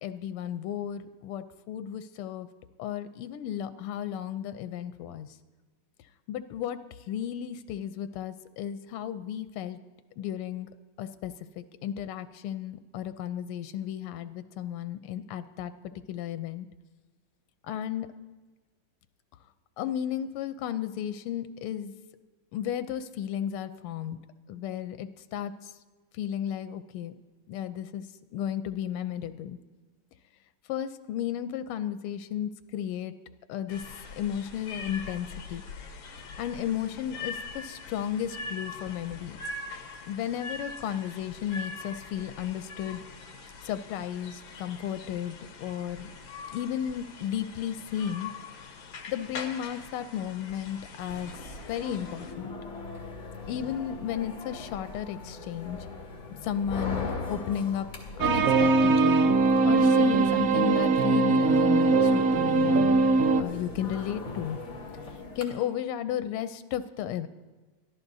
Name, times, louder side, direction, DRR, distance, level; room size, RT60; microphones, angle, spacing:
voice 1, 0.0-2.5 2.8-5.3 6.3-6.8 7.1-9.8 10.2-10.7 11.0-15.7 16.1-16.7 17.7-18.1 19.8-21.9 22.5-24.2 24.5-25.5 26.2-27.1 27.5-28.0 28.3-29.6 30.7-33.1 33.5-33.8 34.2-35.6 36.4-39.4 40.1-43.0 43.6-46.1 46.5-48.3 49.1-51.3 51.7-52.5 53.5-55.8 56.4-57.9 58.2-59.3 59.6-62.9 63.3-64.6 65.4-67.3, left 10 dB, 90° left, 11 dB, 1.6 m, -34 dB
sound 1, 33.7-52.3, left 3 dB, 65° left, 1.8 m, -43 dB
sound 2, 51.1-65.4, left 3 dB, 40° left, 2.5 m, -40 dB
sound 3, 58.2-63.4, right 3 dB, 85° right, 0.7 m, -21 dB
22.5 x 14.0 x 2.7 m, 1.3 s
omnidirectional pair, 2.4 m